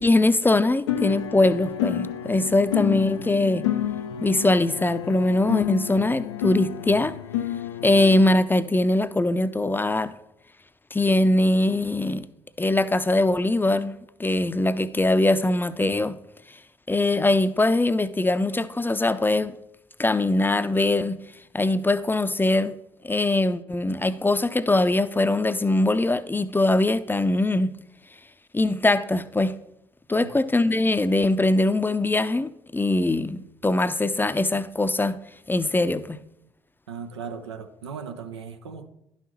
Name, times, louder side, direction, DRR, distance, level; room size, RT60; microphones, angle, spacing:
voice 1, 0.0-3.7 4.2-7.1 7.8-10.1 10.9-12.3 12.6-16.2 16.9-19.6 20.0-21.2 21.5-22.8 23.0-27.7 28.5-29.5 30.1-35.2 35.5-36.2, left 2 dB, 15° left, 0.5 m, -22 dB
sound 1, 0.9-8.3, left 10 dB, 85° left, 0.4 m, -30 dB
voice 2, 36.9-38.9, right 6 dB, 90° right, 0.5 m, -37 dB
11.5 x 5.6 x 3.0 m
hypercardioid pair, 45°, 14 cm